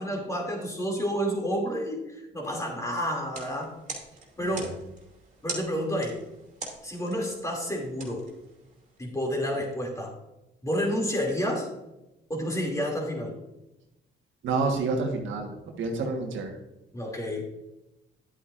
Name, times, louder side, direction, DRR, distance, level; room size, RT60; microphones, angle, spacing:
voice 1, 0.0-3.7 4.4-4.7 5.4-6.2 6.8-8.3 9.0-10.1 10.6-11.7 12.3-13.3 16.9-17.4, equal, 15° left, 0 dB, 2.6 m, -30 dB
sound 1, 3.2-9.0, right 2 dB, 40° right, 2.6 m, -43 dB
voice 2, 14.4-16.5, right 3 dB, 75° right, 3 dB, 1.5 m, -29 dB
10.5 x 8.3 x 2.6 m, 0.95 s
cardioid pair, 90°, 20 cm